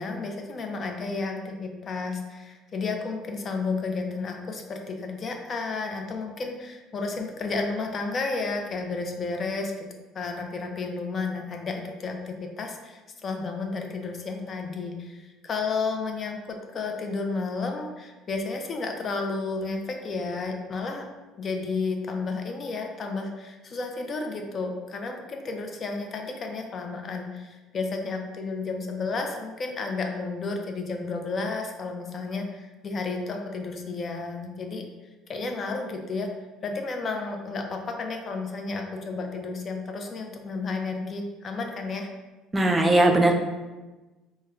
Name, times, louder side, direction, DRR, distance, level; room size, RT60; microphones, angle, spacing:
voice 1, 0.0-9.9 10.1-21.1 21.4-34.8 35.3-36.3 36.6-42.1, left 3 dB, 40° left, 3 dB, 0.5 m, -32 dB
voice 2, 42.5-43.3, right 2 dB, 15° right, 3 dB, 0.4 m, -19 dB
3.5 x 2.2 x 3.2 m, 1.2 s
supercardioid pair, 100°, 0 cm